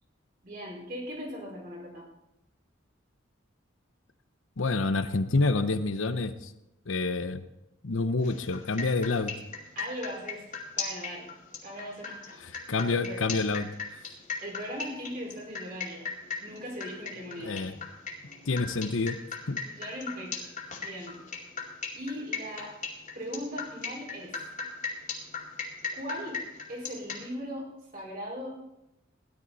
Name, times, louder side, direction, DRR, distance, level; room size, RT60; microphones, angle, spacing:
voice 1, 0.4-2.0 9.7-10.4 10.8-11.3 11.6-12.5 12.9-13.2 14.4-16.1 16.4-17.6 19.6-20.5 20.8-21.2 21.9-22.7 23.1-24.4 25.9-26.4 26.7-28.5, equal, 45° right, -3 dB, 5.1 m, -39 dB
voice 2, 4.6-6.5 6.9-7.5 7.8-9.3 12.4-13.7 17.4-17.7 18.4-19.2 19.5-19.6, left 3 dB, 90° left, 11 dB, 0.9 m, -28 dB
sound 1, 8.2-27.2, left 5 dB, 40° left, 2.4 m, -37 dB
17.0 x 11.5 x 4.2 m, 0.87 s
head